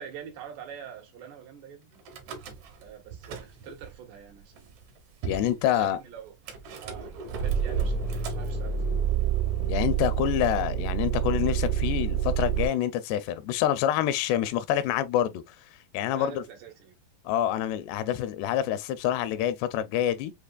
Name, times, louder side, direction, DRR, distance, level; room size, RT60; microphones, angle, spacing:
voice 1, 0.0-2.0 2.8-4.9 5.8-6.4 6.8-9.0 14.4-14.5 16.1-17.0, right 8 dB, 90° right, 3.7 m, -45 dB
Car / Engine starting / Idling, 2.1-2.8 3.1-3.9 4.6-4.7 4.8-4.9 5.2-5.5 6.5-12.6, right 8 dB, 75° right, 1.7 m, -28 dB
voice 2, 5.2-6.0 9.7-15.6 15.9-16.4 17.3-20.3, left 11 dB, 85° left, 2.7 m, -27 dB
7.5 x 2.8 x 2.3 m
omnidirectional pair, 4.7 m